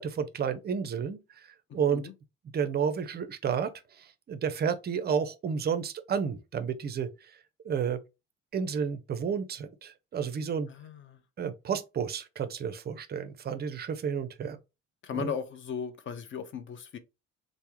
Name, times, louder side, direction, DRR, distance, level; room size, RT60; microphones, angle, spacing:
voice 1, 0.0-2.0 2.5-7.4 7.6-8.0 8.5-10.7 11.4-14.6 15.1-15.3, right 7 dB, 30° right, 0.5 m, -31 dB
voice 2, 1.7-2.1 10.7-11.2 15.0-17.0, left 7 dB, 35° left, 0.6 m, -37 dB
3.3 x 2.1 x 2.9 m
figure-of-eight pair, 55°, 35 cm